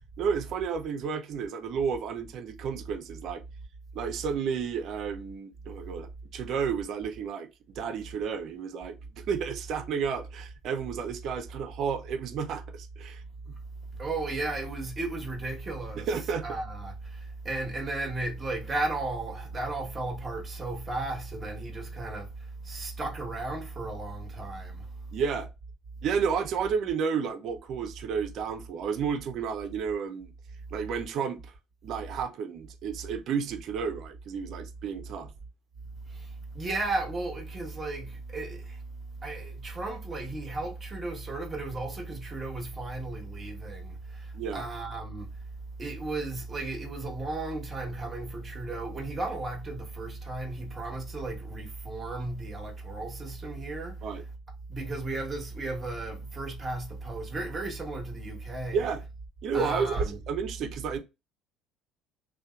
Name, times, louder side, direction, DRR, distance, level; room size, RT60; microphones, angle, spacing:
voice 1, 0.2-3.4 3.9-7.5 7.8-13.6 16.0-16.4 25.1-25.5 26.0-30.3 30.7-31.5 31.8-35.3 44.3-44.7 54.0-54.2 58.7-59.0 59.4-61.0, right 6 dB, 60° right, 0.4 m, -32 dB
voice 2, 14.0-16.1 16.4-25.1 36.1-45.3 45.8-54.0 54.7-58.9 59.5-60.2, right 2 dB, 25° right, 1.1 m, -35 dB
2.7 x 2.1 x 2.2 m
supercardioid pair, 75°, 0 cm